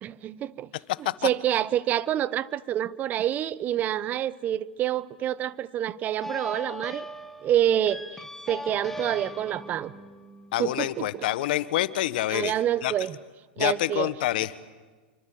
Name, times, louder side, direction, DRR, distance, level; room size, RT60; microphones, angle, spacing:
voice 1, 0.0-0.7 1.2-7.0 7.4-9.9 10.6-11.1 12.3-13.2 13.6-14.1, right 11 dB, 30° right, 1.1 m, -27 dB
sound 1, 6.2-11.3, left 1 dB, 5° left, 2.2 m, -40 dB
voice 2, 10.5-12.5 12.8-12.9 13.6-14.5, left 15 dB, 60° left, 1.5 m, -27 dB
28.5 x 25.5 x 7.8 m
hypercardioid pair, 115°, 5 cm